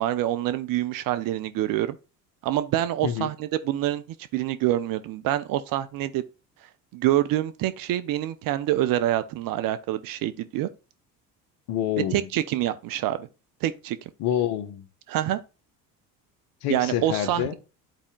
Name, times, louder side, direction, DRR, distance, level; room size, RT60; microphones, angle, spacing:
voice 1, 0.0-2.0 2.4-4.0 4.3-6.2 6.9-10.7 12.1-13.3 13.6-14.0 15.1-15.4 16.7-17.5, right 13 dB, 45° right, 0.6 m, -26 dB
voice 2, 11.7-12.3 14.2-14.9 16.6-17.5, left 11 dB, 55° left, 1.1 m, -27 dB
11.5 x 4.2 x 2.3 m
hypercardioid pair, 65°, 48 cm